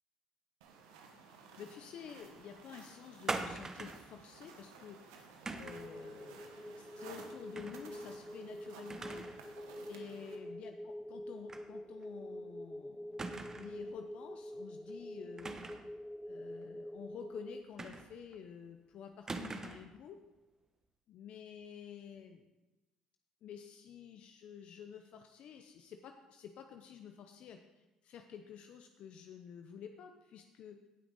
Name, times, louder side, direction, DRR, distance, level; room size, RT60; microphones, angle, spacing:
sound 1, 0.6-10.4, right 5 dB, 90° right, 1.3 m, -56 dB
voice 1, 1.3-9.2 9.9-15.7 16.3-20.2 21.1-22.5 23.4-30.9, left 8 dB, 65° left, 6 dB, 0.7 m, -51 dB
sound 2, 3.3-4.1 5.5-5.9 7.5-7.9 8.2-8.3 8.9-9.4 9.8-9.9 11.5-11.7 12.0-12.1 13.2-13.8 15.4-15.9 17.8-18.3 19.3-19.9, right 3 dB, 25° right, 1.0 m, -42 dB
sound 3, 5.6-17.6, equal, ahead, 0.3 m, -46 dB
17.5 x 6.1 x 4.0 m, 1.0 s
hypercardioid pair, 65°, 2 cm